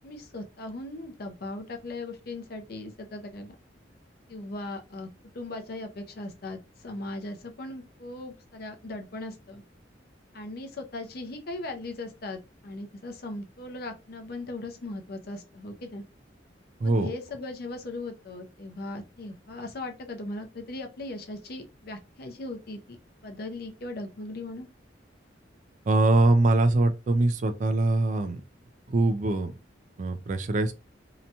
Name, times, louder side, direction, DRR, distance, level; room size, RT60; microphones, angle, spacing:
voice 1, 0.0-3.6 4.3-5.1 5.3-9.6 10.3-16.0 16.8-23.0 23.2-24.7, left 2 dB, 55° left, 0.5 m, -38 dB
voice 2, 16.8-17.1 25.9-28.4 28.9-29.5 30.0-30.7, right 2 dB, 45° right, 0.3 m, -23 dB
2.8 x 2.2 x 2.7 m
head